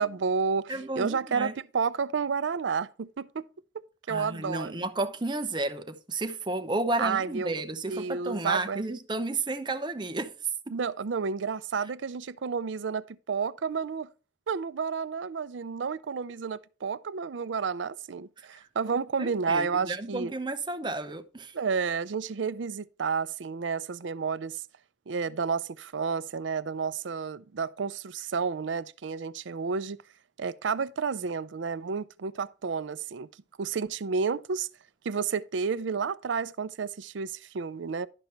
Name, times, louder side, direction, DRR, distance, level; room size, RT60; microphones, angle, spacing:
voice 1, 0.0-3.4 3.7-4.8 7.0-7.6 7.9-8.8 10.7-14.1 14.5-20.3 21.5-24.6 25.1-30.0 30.4-33.3 33.6-34.7 35.0-38.1, right 5 dB, 90° right, 0.5 m, -31 dB
voice 2, 0.7-1.5 4.1-10.3 19.2-21.5, right 2 dB, 25° right, 0.8 m, -32 dB
11.5 x 5.2 x 4.3 m
head